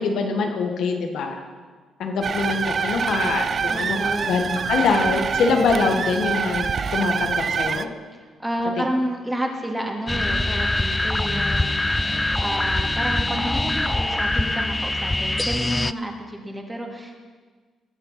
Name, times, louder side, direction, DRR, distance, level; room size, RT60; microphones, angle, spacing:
voice 1, 0.0-1.4 2.0-4.0 4.3-7.9, left 4 dB, 70° left, 3 dB, 1.6 m, -24 dB
sound 1, 2.2-7.9, right 6 dB, 45° right, 0.5 m, -25 dB
voice 2, 3.7-4.7 8.4-17.2, right 1 dB, 10° right, 1 dB, 2.4 m, -30 dB
sound 2, 10.1-15.9, left 2 dB, 15° left, 0.4 m, -23 dB
20.0 x 6.8 x 5.9 m, 1.5 s
cardioid pair, 90°, 0 cm